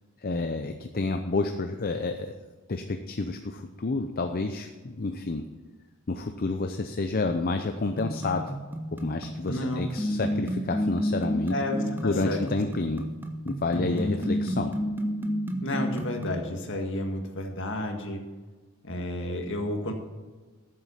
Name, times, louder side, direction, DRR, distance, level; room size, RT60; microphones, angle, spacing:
voice 1, 0.2-2.3 2.7-5.4 6.1-8.6 8.9-11.6 12.0-13.1 13.5-14.7, left 3 dB, 40° left, 6 dB, 0.6 m, -29 dB
sound 1, 8.0-16.5, equal, 10° right, 0.9 m, -31 dB
voice 2, 9.5-9.8 11.5-12.4 13.7-14.1 15.6-18.2 18.8-19.9, left 1 dB, 55° left, 3 dB, 1.8 m, -31 dB
13.0 x 7.7 x 5.6 m, 1.3 s
head